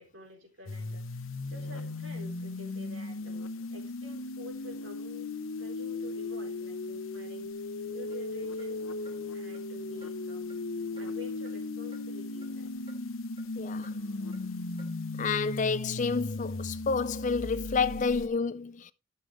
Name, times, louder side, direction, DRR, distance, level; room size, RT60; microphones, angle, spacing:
voice 1, 0.0-5.3 5.6-7.5 7.9-8.9 9.3-10.6 11.0-12.7 13.9-14.2, left 1 dB, 70° right, 3.9 m, -49 dB
sound 1, 0.7-18.3, left 2 dB, 80° left, 0.8 m, -37 dB
sound 2, 8.1-8.2 8.6-8.7 9.0-9.2 9.5-9.7 10.0-10.1 10.5-10.6 11.0-11.1 11.4-11.6 11.9-12.1 12.4-12.5 12.9-13.0 13.4-13.5 13.8-14.0 14.3-14.4 14.8-14.9 15.3-15.4, right 1 dB, 25° right, 3.6 m, -56 dB
voice 2, 13.6-13.9 15.2-18.9, left 5 dB, 40° left, 0.5 m, -29 dB
13.0 x 6.9 x 3.1 m
head